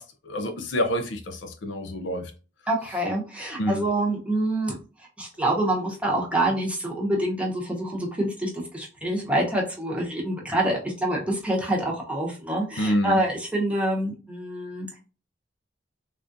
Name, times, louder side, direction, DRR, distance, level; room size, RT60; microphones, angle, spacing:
voice 1, 0.0-2.3 3.6-3.9 12.8-13.2, equal, 80° left, 0.5 m, -27 dB
voice 2, 2.7-4.7 5.2-15.0, right 1 dB, 5° right, 0.9 m, -26 dB
3.5 x 2.4 x 2.6 m
head